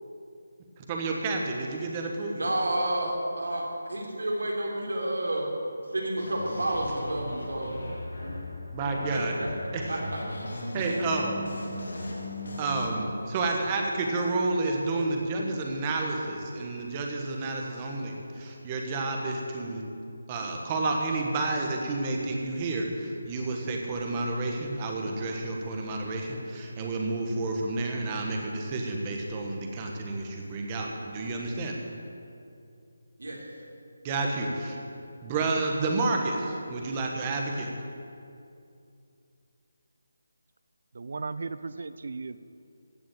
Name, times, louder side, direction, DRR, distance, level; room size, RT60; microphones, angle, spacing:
voice 1, 0.9-2.4 8.7-9.3 9.7-9.8 10.7-11.4 12.6-19.8 20.3-31.8 34.0-34.8 35.2-37.7, right 2 dB, 15° right, 1 dB, 1.3 m, -30 dB
voice 2, 2.3-3.6 3.9-5.5 5.9-7.7 8.2-8.4 9.1-9.5 9.9-10.2 33.2-33.4, right 1 dB, 85° right, -1 dB, 3.8 m, -30 dB
sound 1, 6.2-12.9, left 1 dB, 75° left, 3.2 m, -37 dB
voice 3, 40.9-42.4, right 4 dB, 50° right, 14 dB, 0.5 m, -36 dB
16.0 x 6.2 x 9.2 m, 2.5 s
figure-of-eight pair, 175°, 0 cm